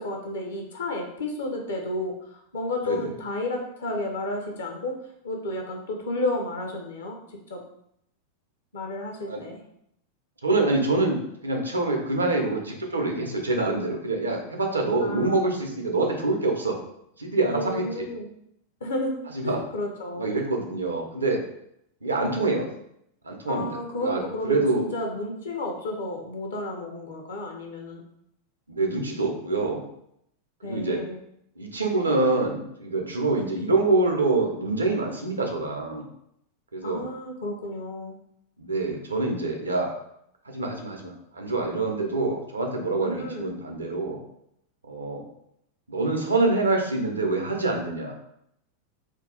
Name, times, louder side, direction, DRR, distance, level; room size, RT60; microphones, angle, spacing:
voice 1, 0.0-4.9 5.2-7.6 8.7-9.6 15.0-15.6 17.5-18.3 18.8-20.3 22.1-22.6 23.5-28.0 30.6-31.2 36.8-38.2 43.0-43.5, left 1 dB, 65° left, 2 dB, 0.6 m, -32 dB
voice 2, 10.4-16.8 17.2-18.1 19.4-19.6 20.2-21.4 22.0-22.6 23.2-23.7 24.0-24.8 28.7-29.8 30.6-31.0 31.6-36.1 36.7-37.0 38.6-39.9 40.4-44.2 44.9-45.2 45.9-48.1, right 2 dB, 75° right, 2 dB, 0.6 m, -25 dB
2.6 x 2.3 x 3.8 m, 0.75 s
figure-of-eight pair, 90°, 0 cm